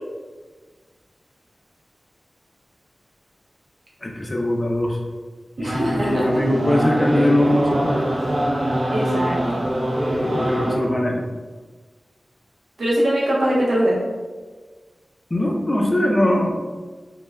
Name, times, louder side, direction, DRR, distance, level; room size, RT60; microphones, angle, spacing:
voice 1, 4.0-5.0 5.6-8.1 10.1-11.2 15.3-16.5, left 1 dB, 30° left, -1 dB, 0.4 m, -21 dB
sound 1, 5.6-10.8, right 1 dB, 50° right, 0.4 m, -23 dB
voice 2, 5.6-6.7 8.9-9.6 12.8-14.0, equal, 80° right, -5 dB, 0.7 m, -22 dB
3.1 x 2.1 x 2.2 m, 1.4 s
wide cardioid pair, 90°, 0 cm